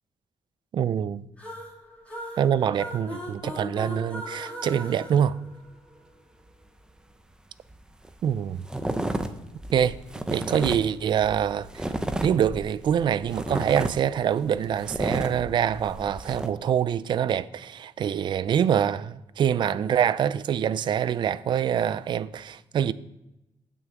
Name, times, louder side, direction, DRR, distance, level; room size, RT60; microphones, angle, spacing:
voice 1, 0.7-1.3 2.4-5.4 8.2-8.6 9.7-10.0 10.3-11.8 12.2-22.9, right 9 dB, 50° right, 0.4 m, -25 dB
sound 1, 1.4-6.1, equal, 10° left, 3.0 m, -39 dB
sound 2, 7.7-7.8 8.0-8.3 8.6-16.5, right 1 dB, 5° right, 0.6 m, -32 dB
8.9 x 6.3 x 7.9 m
wide cardioid pair, 180°, 10 cm